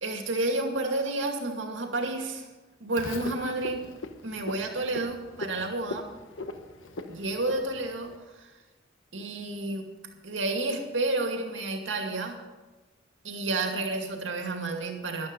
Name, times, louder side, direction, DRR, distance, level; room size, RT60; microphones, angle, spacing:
voice 1, 0.0-2.5 2.8-3.8 4.2-6.1 7.1-8.5 9.1-9.9 10.2-12.4 13.2-15.3, right 2 dB, 75° right, 3 dB, 2.3 m, -30 dB
Frog, 3.0-8.2, left 2 dB, 85° left, 1.2 m, -40 dB
13.5 x 11.5 x 5.4 m, 1.2 s
head